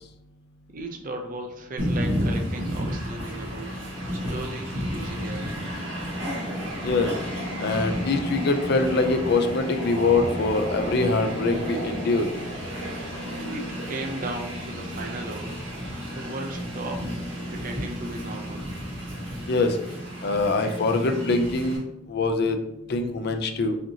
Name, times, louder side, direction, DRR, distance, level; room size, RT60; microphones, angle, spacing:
voice 1, 0.7-3.8 4.1-5.5 13.2-15.6 16.1-17.1 17.5-18.7, right 2 dB, 45° right, 3 dB, 0.5 m, -36 dB
Train, 1.8-21.8, equal, 90° right, 1.4 m, -32 dB
voice 2, 7.6-12.3 19.5-19.8 20.2-22.6 22.9-23.8, left 3 dB, 55° left, 6 dB, 0.4 m, -24 dB
5.0 x 2.8 x 2.7 m, 0.85 s
head